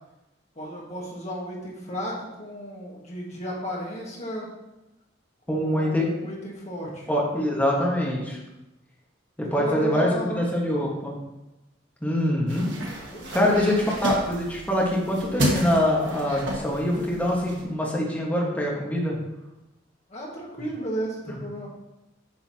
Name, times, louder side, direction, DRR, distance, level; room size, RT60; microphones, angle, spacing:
voice 1, 0.6-4.5 5.5-7.1 9.4-10.4 13.1-13.8 20.1-21.7, equal, 35° left, -3 dB, 1.7 m, -34 dB
voice 2, 5.5-6.1 7.1-8.4 9.4-11.2 12.0-12.7 13.3-19.2 21.3-21.4, left 1 dB, 10° left, -3 dB, 1.4 m, -24 dB
sound 1, 12.5-17.6, equal, 80° right, 1.6 m, -31 dB
8.5 x 5.6 x 2.9 m, 0.97 s
head